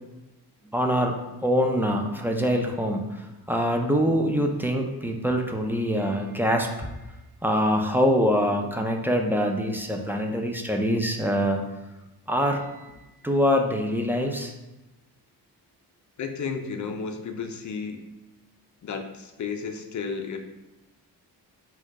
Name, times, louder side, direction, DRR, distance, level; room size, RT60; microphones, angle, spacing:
voice 1, 0.7-6.9 7.4-11.6 12.3-12.8 13.2-14.5, equal, 5° right, 2 dB, 0.3 m, -24 dB
voice 2, 16.2-18.1 18.8-20.4, left 5 dB, 45° left, 5 dB, 0.5 m, -33 dB
4.4 x 2.3 x 4.6 m, 1.0 s
wide cardioid pair, 130°, 41 cm